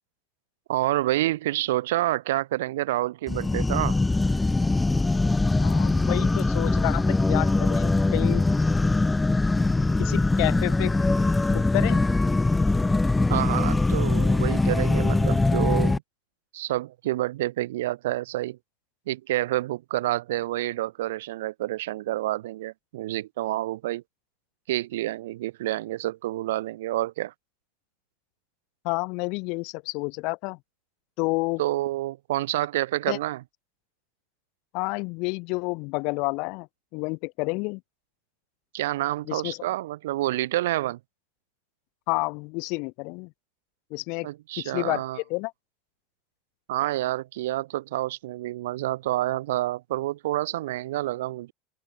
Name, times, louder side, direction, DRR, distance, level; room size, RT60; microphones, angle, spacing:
voice 1, 0.7-4.0 13.3-16.0 16.5-18.6 19.1-24.0 24.7-27.3 31.6-33.4 38.7-41.0 44.2-45.2 46.7-51.5, right 16 dB, 80° right, 2.0 m, -28 dB
sound 1, 3.3-16.0, left 2 dB, 10° left, 0.9 m, -22 dB
voice 2, 5.6-8.4 10.0-10.9 11.5-12.0 28.8-30.6 31.2-31.6 33.1-33.2 34.7-36.7 36.9-37.8 39.3-39.6 42.1-43.3 43.9-44.3 44.6-45.0 45.3-45.5, left 29 dB, 60° left, 1.4 m, -29 dB
supercardioid pair, 105°, 0 cm